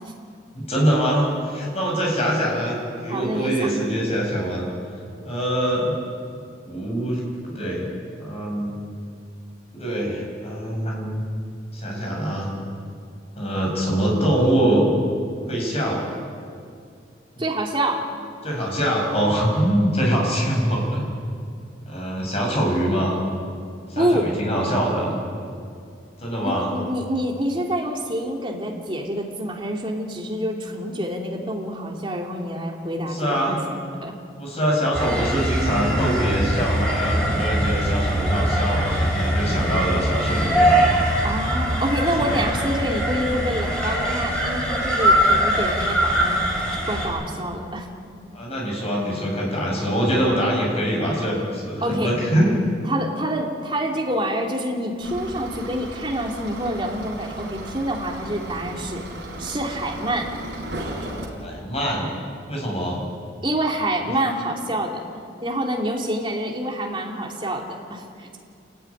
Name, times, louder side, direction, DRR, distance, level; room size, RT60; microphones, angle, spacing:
voice 1, 0.5-4.7 5.2-6.0 6.7-7.9 8.2-8.8 9.7-11.3 11.7-12.5 13.4-14.9 15.5-16.0 18.4-21.0 21.9-23.2 23.9-25.2 26.2-26.7 33.1-33.6 34.4-40.8 42.2-42.5 48.3-52.5 61.4-62.1 62.5-63.0, equal, 35° left, -1 dB, 7.1 m, -23 dB
voice 2, 3.1-3.7 17.4-18.1 24.0-24.3 26.4-33.6 34.0-34.1 41.2-46.4 46.9-47.9 51.8-52.1 52.8-59.0 59.4-60.3 63.4-65.0 65.4-68.4, right 1 dB, 25° right, 0 dB, 3.0 m, -27 dB
sound 1, 34.9-47.1, equal, 5° left, 6.9 m, -22 dB
sound 2, 55.0-61.3, right 1 dB, 65° right, 5.3 m, -35 dB
27.5 x 14.5 x 9.9 m, 2.3 s
head